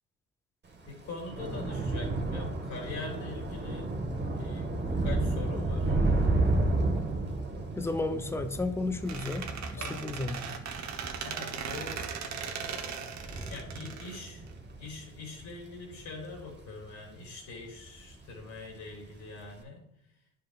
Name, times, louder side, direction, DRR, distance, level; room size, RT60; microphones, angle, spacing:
Thunder / Rain, 0.7-17.3 17.7-18.1 18.4-18.6, right 2 dB, 35° right, 1.2 m, -32 dB
voice 1, 0.8-3.9 4.4-5.9 9.8-10.0 11.2-12.0 13.5-14.4 14.8-19.8, left 3 dB, 70° left, 0 dB, 2.6 m, -43 dB
voice 2, 7.7-9.5 9.7-10.4, left 2 dB, 10° left, 9 dB, 0.5 m, -32 dB
Squeak, 9.1-14.9, right 6 dB, 65° right, 0.9 m, -38 dB
10.0 x 5.4 x 2.3 m, 0.75 s
cardioid pair, 90°, 30 cm